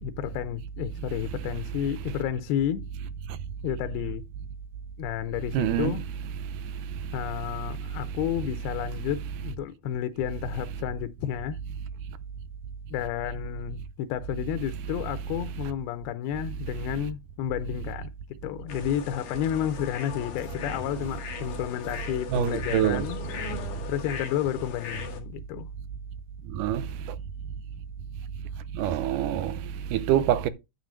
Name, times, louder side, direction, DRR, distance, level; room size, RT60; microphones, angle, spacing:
voice 1, 0.0-2.9 3.6-4.2 5.0-6.0 7.1-11.6 12.9-18.1 18.4-23.2 23.9-25.7, left 11 dB, 90° left, 2.7 m, -31 dB
voice 2, 5.5-5.9 22.3-23.1 26.6-26.8 28.8-29.6 29.9-30.5, right 11 dB, 75° right, 2.1 m, -25 dB
sound 1, 18.7-25.2, left 7 dB, 60° left, 3.2 m, -39 dB
9.8 x 3.8 x 6.3 m
omnidirectional pair, 4.4 m